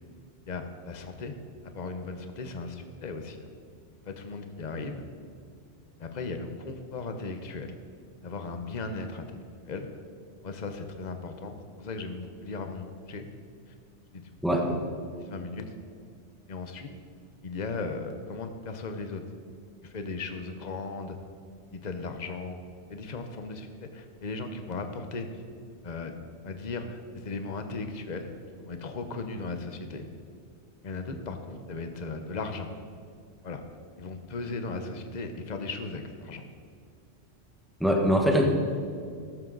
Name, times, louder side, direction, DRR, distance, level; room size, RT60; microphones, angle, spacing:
voice 1, 0.5-1.4 1.7-3.5 4.0-5.0 6.0-7.7 8.2-9.9 10.4-13.3 14.1-14.8 15.2-15.6 16.5-16.9 17.4-19.2 19.8-21.2 21.7-22.5 22.9-25.3 25.8-26.2 26.4-28.3 28.6-30.1 30.8-32.7 33.4-33.6 34.0-36.4, left 3 dB, 40° left, 6 dB, 1.0 m, -37 dB
voice 2, 37.8-38.5, equal, ahead, 0 dB, 1.5 m, -22 dB
14.0 x 12.0 x 4.0 m, 2.3 s
omnidirectional pair, 1.1 m